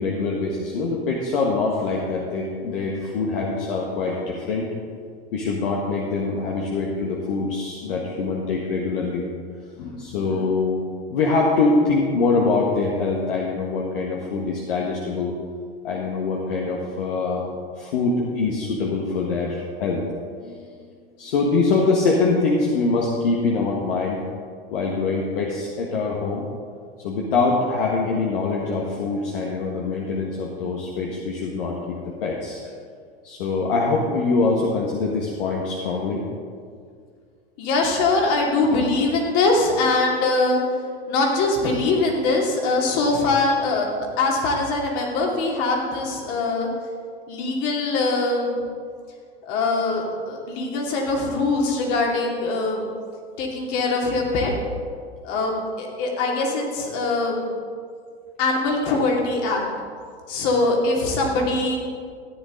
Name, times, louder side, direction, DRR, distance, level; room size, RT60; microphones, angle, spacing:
voice 1, 0.0-4.7 5.3-9.3 9.8-10.8 11.1-15.3 15.8-17.5 17.8-20.0 20.4-20.8 21.2-24.2 24.7-26.5 27.0-32.6 33.2-36.2, left 3 dB, 60° left, -2 dB, 1.6 m, -24 dB
voice 2, 37.6-40.6 41.1-46.7 47.3-48.6 49.4-52.9 53.4-54.5 55.2-57.4 58.4-59.6 60.3-61.8, left 3 dB, 45° left, 0 dB, 2.7 m, -22 dB
14.0 x 9.8 x 3.9 m, 2.1 s
figure-of-eight pair, 95°, 31 cm